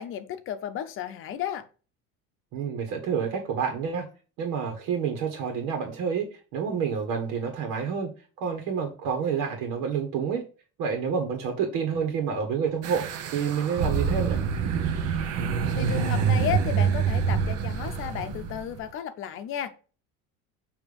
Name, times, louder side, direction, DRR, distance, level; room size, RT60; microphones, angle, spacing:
voice 1, 0.0-1.7 15.8-19.7, left 9 dB, 45° left, 0.7 m, -33 dB
voice 2, 2.5-4.1 4.4-8.1 8.4-10.4 10.8-13.0 13.3-14.4, right 6 dB, 80° right, 1.4 m, -28 dB
sound 1, 12.8-18.8, right 6 dB, 55° right, 0.9 m, -26 dB
6.8 x 2.9 x 5.2 m
cardioid pair, 160°, 30 cm